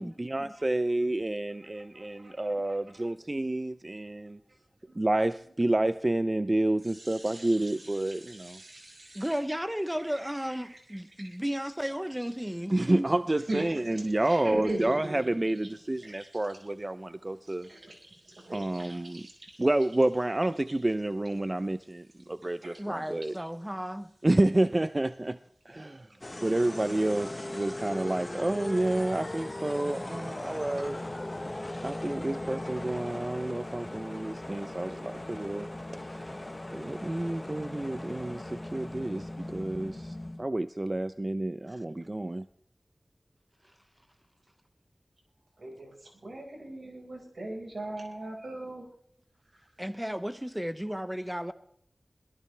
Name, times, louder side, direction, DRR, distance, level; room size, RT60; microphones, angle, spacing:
voice 1, 0.0-4.4 5.0-8.6 12.7-17.7 18.5-19.3 19.6-23.4 24.2-25.4 25.7-26.1 26.4-31.0 31.8-35.7 36.0-36.4 36.7-42.5, right 1 dB, 35° right, 0.5 m, -29 dB
voice 2, 1.7-2.8 4.9-5.1 6.8-9.3 10.1-10.3 10.6-10.8 11.2-11.4 13.5-15.3 15.6-15.7 16.0-16.3 17.5-19.6 22.6-22.8 30.8-30.9 45.6-48.9, right 1 dB, 75° right, 4.9 m, -41 dB
voice 3, 9.1-13.1 22.8-24.1 41.7-41.8 49.8-51.5, equal, 10° right, 0.8 m, -34 dB
sound 1, 26.2-40.5, left 1 dB, 30° left, 1.0 m, -38 dB
22.5 x 17.5 x 3.3 m
wide cardioid pair, 45°, 0 cm